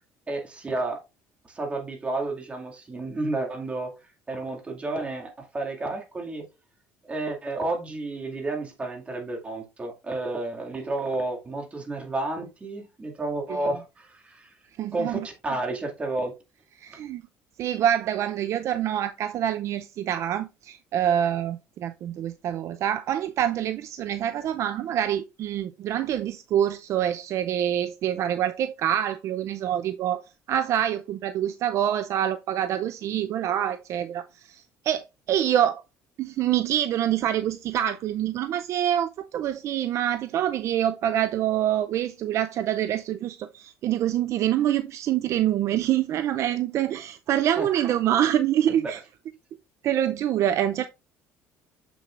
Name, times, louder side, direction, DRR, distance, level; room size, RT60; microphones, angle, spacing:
voice 1, 0.3-1.0 1.5-3.9 4.3-6.4 7.1-14.5 14.9-16.3 47.6-47.7 48.7-48.9, right 2 dB, 20° right, 2.2 m, -31 dB
voice 2, 14.8-15.3 16.8-17.2 17.6-30.2 30.5-35.8 36.2-49.0 49.8-50.9, right 11 dB, 55° right, 0.5 m, -26 dB
7.4 x 6.9 x 2.5 m
cardioid pair, 125°, 6 cm